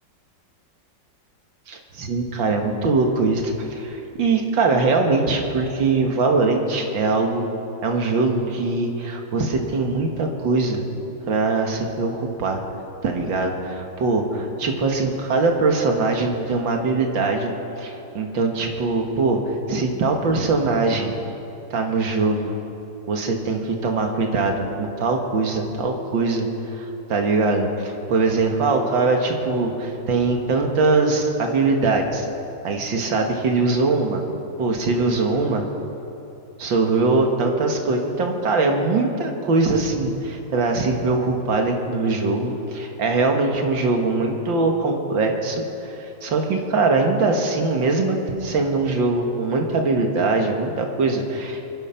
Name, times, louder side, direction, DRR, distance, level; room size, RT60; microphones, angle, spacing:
voice 1, 1.7-7.5 7.8-10.8 11.3-12.6 13.0-17.5 17.8-21.2 21.7-22.5 23.1-32.3 32.6-34.2 34.6-35.7 36.6-51.7, right 3 dB, 85° right, 3 dB, 2.3 m, -22 dB
24.5 x 10.0 x 5.7 m, 3.0 s
omnidirectional pair, 2.0 m